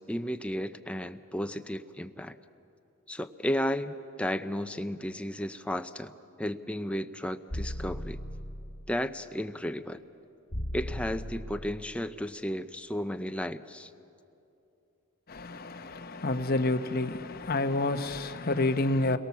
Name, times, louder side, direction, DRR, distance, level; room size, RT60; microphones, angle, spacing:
voice 1, 0.1-2.4 3.1-6.1 6.4-8.2 8.9-10.0 10.7-13.9, equal, 5° left, 0.6 m, -33 dB
sound 1, 7.5-8.9 10.5-11.9, equal, 60° left, 2.1 m, -37 dB
voice 2, 15.3-19.2, left 2 dB, 45° left, 1.0 m, -29 dB
29.0 x 22.5 x 7.2 m
head